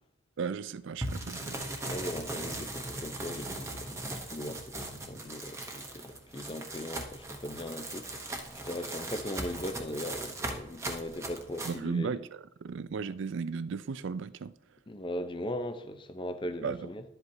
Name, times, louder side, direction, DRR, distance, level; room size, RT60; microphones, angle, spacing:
voice 1, 0.4-1.6 11.6-14.5 16.6-16.9, right 5 dB, 55° right, 0.4 m, -35 dB
sound 1, 1.0-11.8, right 1 dB, 15° right, 0.9 m, -39 dB
voice 2, 1.8-12.2 14.9-17.0, left 1 dB, 20° left, 0.6 m, -39 dB
12.0 x 7.9 x 2.7 m
head